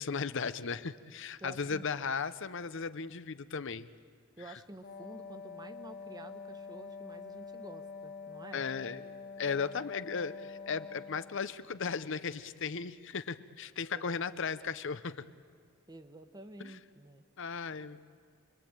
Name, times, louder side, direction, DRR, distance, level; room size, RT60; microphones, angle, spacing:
voice 1, 0.0-3.9 8.5-9.0 9.4-15.3 16.6-16.8 17.4-18.0, left 5 dB, 65° left, 13 dB, 0.7 m, -36 dB
voice 2, 1.4-1.9 4.4-8.7 13.9-14.2 15.9-17.2, right 1 dB, 20° right, 9 dB, 1.1 m, -50 dB
Wind instrument woodwind instrument, 4.8-11.6, left 5 dB, 45° left, 1.2 m, -46 dB
28.5 x 22.0 x 8.9 m, 2.1 s
head